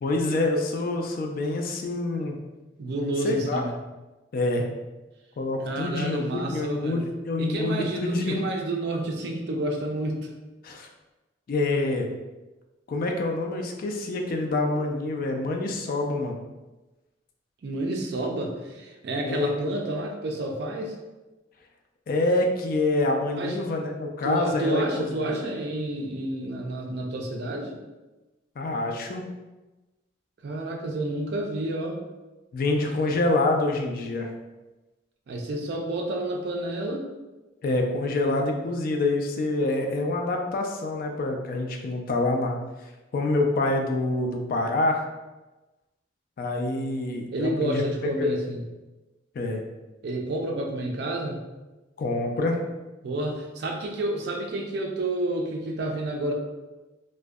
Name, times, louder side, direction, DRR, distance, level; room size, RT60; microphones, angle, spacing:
voice 1, 0.0-2.4 3.2-3.6 4.3-4.7 5.4-8.4 10.6-10.9 11.5-12.1 12.9-16.4 19.2-19.5 22.1-24.8 25.2-25.4 28.6-29.2 32.5-34.3 37.6-42.6 43.1-45.0 46.4-47.8 48.2-48.3 49.4-49.6 52.0-52.6, left 2 dB, 50° left, 3 dB, 0.3 m, -26 dB
voice 2, 2.8-3.8 5.6-7.0 7.4-10.3 17.6-20.9 23.3-23.6 24.2-27.8 30.4-32.0 35.3-37.1 47.3-48.6 50.0-51.5 53.0-56.3, right 1 dB, 60° right, 2 dB, 0.4 m, -30 dB
2.6 x 2.1 x 2.2 m, 1.1 s
head